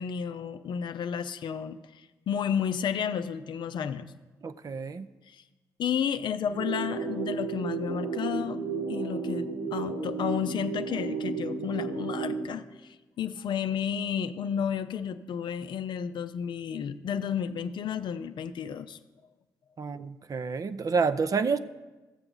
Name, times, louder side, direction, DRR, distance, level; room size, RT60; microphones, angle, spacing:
voice 1, 0.0-4.1 5.3-5.4 5.8-8.6 8.9-19.0, left 8 dB, 55° left, 11 dB, 0.5 m, -32 dB
voice 2, 4.4-5.1 19.8-21.6, right 5 dB, 40° right, 13 dB, 0.5 m, -29 dB
sound 1, 6.5-12.5, right 4 dB, 80° right, 2.5 m, -33 dB
14.0 x 7.8 x 3.8 m, 1.2 s
hypercardioid pair, 40°, 9 cm